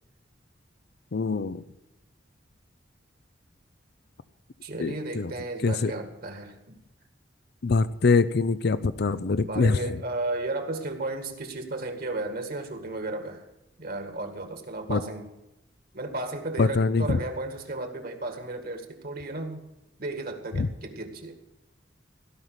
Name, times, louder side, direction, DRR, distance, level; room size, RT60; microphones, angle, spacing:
voice 1, 1.1-1.6 4.8-5.3 5.6-5.9 7.6-9.8 14.9-15.0 16.6-17.2 20.6-20.7, left 4 dB, 60° left, 14 dB, 0.5 m, -24 dB
voice 2, 4.6-6.8 9.4-13.4 13.8-15.3 15.9-19.6 20.0-21.4, right 2 dB, 50° right, 6 dB, 1.9 m, -34 dB
17.0 x 5.7 x 9.6 m, 0.94 s
head